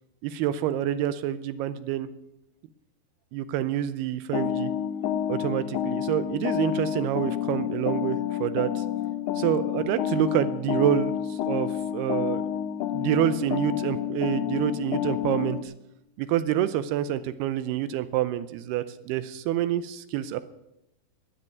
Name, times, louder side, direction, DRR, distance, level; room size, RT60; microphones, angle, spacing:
voice 1, 0.2-2.1 3.3-4.7 5.3-8.8 9.4-12.4 12.9-15.7 16.2-20.4, right 11 dB, 80° right, 13 dB, 2.6 m, -27 dB
sound 1, 4.3-15.6, left 10 dB, 75° left, 1.9 m, -29 dB
13.0 x 9.6 x 9.3 m, 0.85 s
omnidirectional pair, 4.7 m